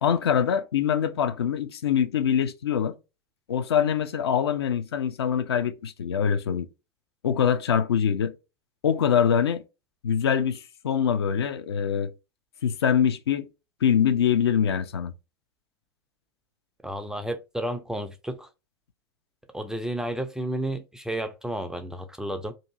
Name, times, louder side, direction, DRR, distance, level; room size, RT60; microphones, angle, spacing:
voice 1, 0.0-3.0 3.5-6.7 7.2-8.3 8.8-9.6 10.0-12.1 12.6-13.5 13.8-15.1, left 8 dB, 70° left, 0.4 m, -24 dB
voice 2, 16.8-18.5 19.5-22.5, right 1 dB, 5° right, 0.3 m, -32 dB
2.7 x 2.4 x 2.7 m
figure-of-eight pair, 90°, 14 cm